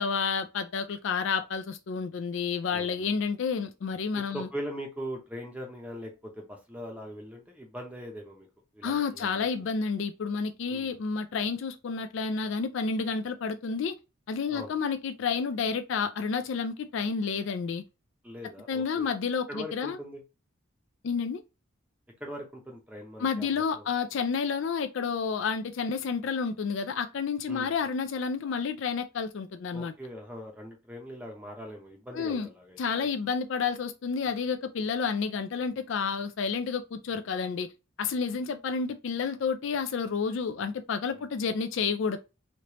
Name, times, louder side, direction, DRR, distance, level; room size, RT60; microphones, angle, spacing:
voice 1, 0.0-4.5 8.8-13.9 14.3-17.8 18.7-20.0 21.0-21.4 23.2-29.9 32.1-32.5 32.8-37.7 38.0-42.2, left 5 dB, 60° left, 0.3 m, -30 dB
voice 2, 2.7-3.2 4.3-8.5 8.7-9.5 10.7-10.9 14.5-14.7 18.2-19.1 19.5-20.2 22.2-23.9 27.5-27.7 29.7-33.1 41.1-41.2, equal, 5° right, 0.7 m, -41 dB
3.2 x 2.9 x 2.9 m
head